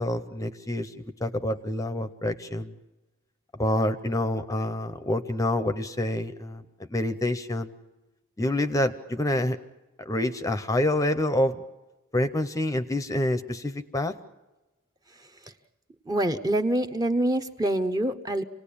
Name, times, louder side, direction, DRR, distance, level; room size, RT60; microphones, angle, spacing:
voice 1, 0.0-2.7 3.6-6.6 6.9-7.7 8.4-9.6 10.0-11.6 12.1-14.1, left 1 dB, 15° left, 10 dB, 0.7 m, -27 dB
voice 2, 16.1-18.4, right 1 dB, 20° right, 7 dB, 0.9 m, -25 dB
27.0 x 18.5 x 8.6 m, 1.1 s
head